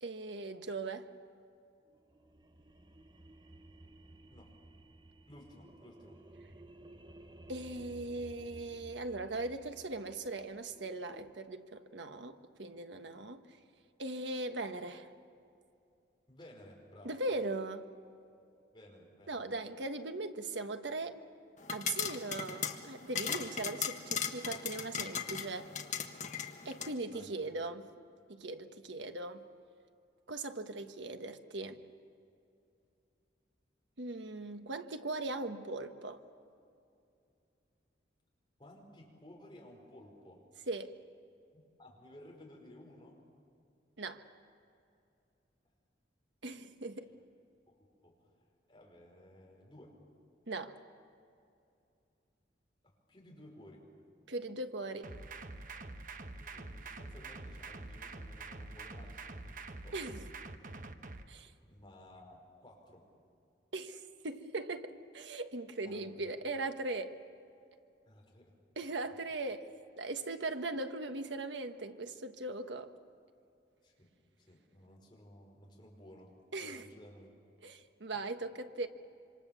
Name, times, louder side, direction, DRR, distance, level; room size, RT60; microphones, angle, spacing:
voice 1, 0.0-1.1 7.5-13.4 14.0-15.1 17.0-17.9 19.3-21.2 21.7-25.7 26.6-27.9 28.3-29.4 30.3-31.8 34.0-36.2 40.7-40.9 44.0-44.2 46.4-47.1 50.5-50.7 54.3-55.1 59.9-60.3 61.3-61.5 63.7-67.1 68.8-69.7 70.0-72.9 76.5-76.9 77.6-78.9, right 2 dB, 85° right, 7 dB, 1.4 m, -39 dB
sound 1, 1.9-11.3, right 1 dB, 25° right, 0.9 m, -56 dB
voice 2, 5.3-6.2 16.3-17.2 18.7-19.4 25.4-25.5 27.1-27.3 38.6-40.4 41.5-43.2 47.7-50.0 52.8-53.9 56.3-60.0 60.6-60.8 61.5-63.1 65.8-66.3 68.1-68.5 73.8-74.1 74.4-77.3, left 1 dB, 25° left, 0 dB, 5.1 m, -56 dB
sound 2, 21.6-26.9, left 7 dB, 40° left, 1.5 m, -38 dB
sound 3, 55.0-61.2, right 3 dB, 45° right, 1.1 m, -46 dB
26.5 x 26.0 x 7.2 m, 2.5 s
head